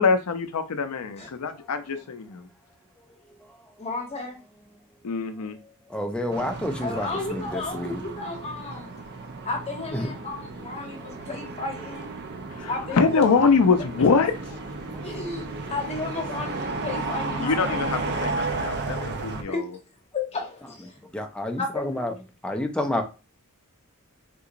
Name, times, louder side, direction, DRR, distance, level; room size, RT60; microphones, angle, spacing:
voice 1, 0.0-2.5 5.0-5.6 12.6-14.3 17.4-19.6, left 5 dB, 85° left, 0.5 m, -23 dB
voice 2, 3.8-4.4 6.8-8.9 9.5-12.1 12.7-13.5 14.0-14.1 15.0-17.9 19.5-19.7 20.1-20.9 21.6-22.1, left 3 dB, 30° left, 0.9 m, -33 dB
voice 3, 5.9-8.0 9.9-10.1 12.3-12.4 14.8-15.1 16.4-16.8 21.1-22.1 22.4-23.0, left 1 dB, 5° left, 0.5 m, -30 dB
sound 1, 6.3-19.4, right 3 dB, 50° right, 0.5 m, -34 dB
3.7 x 2.8 x 2.5 m
head